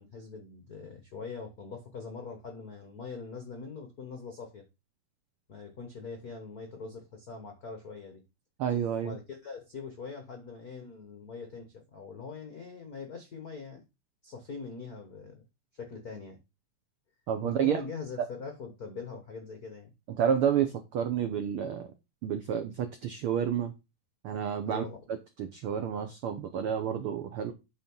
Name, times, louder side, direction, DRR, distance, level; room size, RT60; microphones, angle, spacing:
voice 1, 0.0-4.6 5.5-8.2 9.0-13.8 14.2-15.4 15.7-16.4 17.4-19.9 24.6-25.0, left 5 dB, 70° left, 0.8 m, -42 dB
voice 2, 8.6-9.2 17.3-17.8 18.2-18.3 20.2-21.9 22.2-23.7 24.2-27.5, right 8 dB, 85° right, 1.2 m, -30 dB
9.2 x 3.8 x 5.4 m
omnidirectional pair, 3.5 m